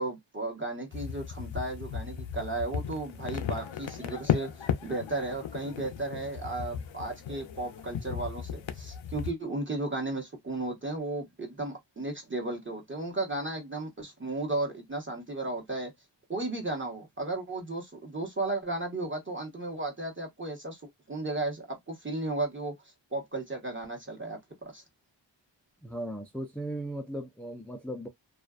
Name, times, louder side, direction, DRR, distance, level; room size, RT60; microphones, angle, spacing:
voice 1, 0.0-15.9 16.3-20.8 21.1-22.7 23.1-24.8, right 2 dB, 25° right, 1.1 m, -34 dB
sound 1, 0.9-9.3, left 8 dB, 85° left, 0.5 m, -35 dB
voice 2, 25.8-28.1, right 1 dB, 5° left, 0.4 m, -37 dB
2.4 x 2.3 x 2.3 m
wide cardioid pair, 50°, 45 cm